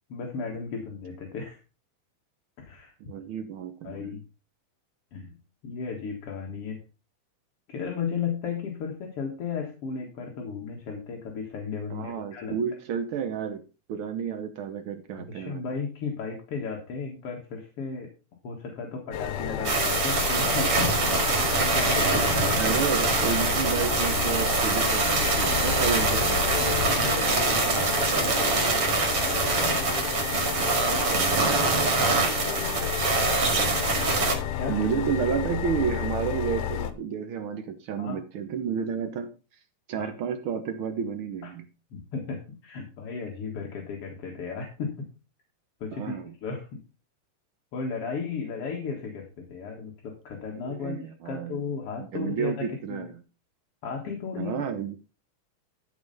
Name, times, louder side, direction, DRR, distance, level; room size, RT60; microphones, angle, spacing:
voice 1, 0.1-1.6 2.6-2.9 3.8-4.2 5.1-5.4 5.6-6.8 7.7-12.6 15.2-18.1 18.4-21.0 21.5-22.6 26.9-30.0 30.9-31.0 32.3-32.8 34.5-34.7 38.0-38.2 40.0-40.1 41.9-45.1 45.8-46.8 47.7-53.1 53.8-54.6, left 5 dB, 50° left, 1 dB, 2.2 m, -35 dB
voice 2, 3.0-4.2 11.9-13.6 13.9-15.6 22.6-26.4 31.1-31.8 34.7-39.3 39.9-41.6 45.9-46.3 50.5-51.6 52.1-53.2 54.4-55.0, right 7 dB, 85° right, 7 dB, 1.1 m, -31 dB
sound 1, 19.1-36.9, left 10 dB, 75° left, 2.4 m, -31 dB
sound 2, 19.6-34.4, right 3 dB, 50° right, 2.9 m, -24 dB
13.0 x 4.8 x 5.5 m, 0.33 s
omnidirectional pair, 3.7 m